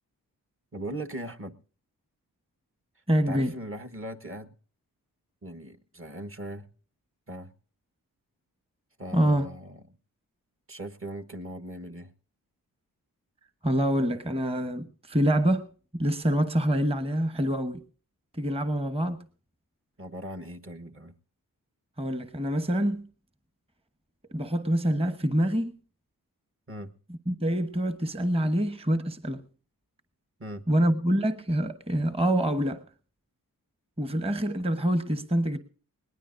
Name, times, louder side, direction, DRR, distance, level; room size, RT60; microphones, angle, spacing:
voice 1, 0.7-1.6 3.3-4.5 5.4-6.7 7.3-7.5 9.0-9.8 10.7-12.1 20.0-21.1 26.7-26.9 30.4-30.6, right 1 dB, 35° right, 1.3 m, -39 dB
voice 2, 3.1-3.5 9.1-9.5 13.6-17.8 18.3-19.2 22.0-23.1 24.3-25.7 27.3-29.4 30.7-32.8 34.0-35.6, right 1 dB, 15° right, 1.1 m, -26 dB
20.5 x 19.0 x 2.6 m
wide cardioid pair, 85°, 35 cm